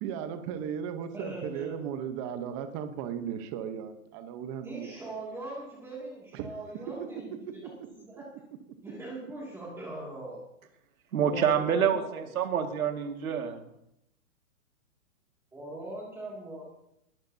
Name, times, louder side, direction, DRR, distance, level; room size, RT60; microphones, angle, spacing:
voice 1, 0.0-5.1 6.3-6.5, right 8 dB, 20° right, 9 dB, 0.9 m, -36 dB
voice 2, 1.1-1.8 4.6-7.6 8.0-8.3 8.8-10.4 11.1-12.3 15.5-16.7, right 2 dB, 5° right, -5 dB, 2.3 m, -41 dB
voice 3, 11.1-13.6, right 8 dB, 75° right, 4 dB, 2.0 m, -27 dB
21.0 x 12.5 x 2.7 m, 0.79 s
hypercardioid pair, 155°, 42 cm